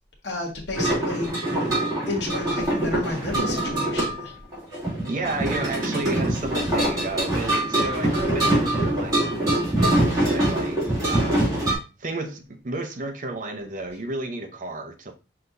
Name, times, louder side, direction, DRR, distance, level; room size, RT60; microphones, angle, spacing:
voice 1, 0.2-1.3 2.1-4.3, left 2 dB, 70° left, 1.4 m, -31 dB
sound 1, 0.7-11.7, right 1 dB, 20° right, 3.0 m, -24 dB
voice 2, 5.1-15.1, right 2 dB, 45° right, 0.7 m, -32 dB
5.9 x 3.3 x 2.6 m
head